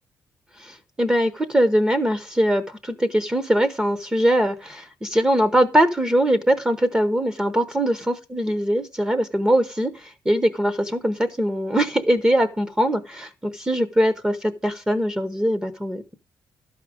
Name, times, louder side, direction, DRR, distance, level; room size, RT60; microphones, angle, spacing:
voice 1, 0.6-9.9 10.2-16.1, equal, 10° right, 11 dB, 0.8 m, -22 dB
12.0 x 4.9 x 4.9 m, 0.30 s
cardioid pair, 120°, 7 cm